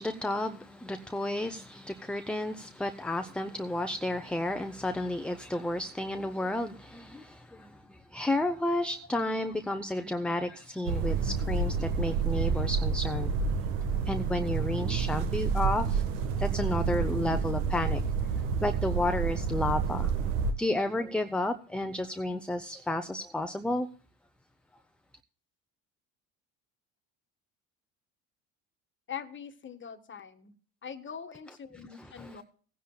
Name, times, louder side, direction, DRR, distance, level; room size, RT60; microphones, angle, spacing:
voice 1, 0.0-13.3 14.1-16.0 16.4-18.0 18.6-20.1 20.6-23.9 31.9-32.4, left 1 dB, 5° left, 8 dB, 0.6 m, -32 dB
sound 1, 10.8-20.5, right 5 dB, 85° right, 1.4 m, -29 dB
voice 2, 29.1-30.5 30.8-32.4, left 7 dB, 30° left, 8 dB, 1.4 m, -42 dB
18.5 x 10.0 x 2.3 m, 0.42 s
supercardioid pair, 90°, 38 cm